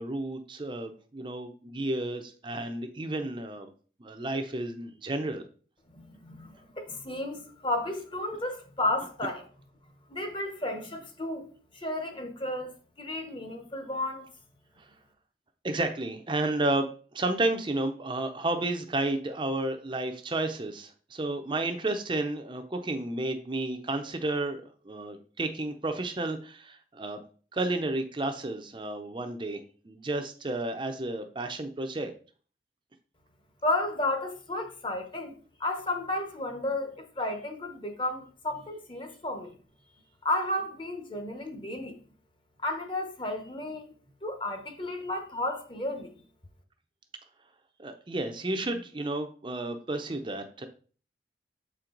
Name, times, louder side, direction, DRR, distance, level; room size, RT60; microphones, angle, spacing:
voice 1, 0.0-3.7 4.0-5.4 14.8-14.9 15.6-27.2 27.5-32.1 47.8-50.7, right 2 dB, 30° right, 0.5 m, -32 dB
voice 2, 5.9-9.5 10.1-11.5 11.7-14.3 33.6-39.6 40.2-42.0 42.6-43.9 44.2-46.1, left 1 dB, 30° left, 1.0 m, -33 dB
7.5 x 4.5 x 3.8 m
head